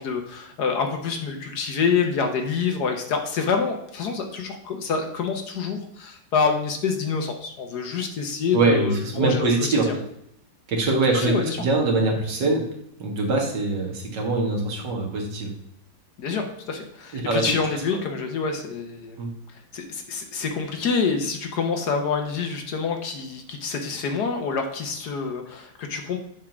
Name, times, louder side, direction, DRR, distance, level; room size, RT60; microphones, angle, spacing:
voice 1, 0.0-9.5 9.9-10.0 11.1-11.6 16.2-19.2 19.7-26.2, left 5 dB, 60° left, 4 dB, 1.4 m, -27 dB
voice 2, 8.5-9.9 10.7-12.6 13.0-15.5 17.1-17.5 17.7-18.0 19.2-19.3, right 3 dB, 65° right, 0 dB, 2.2 m, -23 dB
7.6 x 3.7 x 6.0 m, 0.74 s
omnidirectional pair, 2.0 m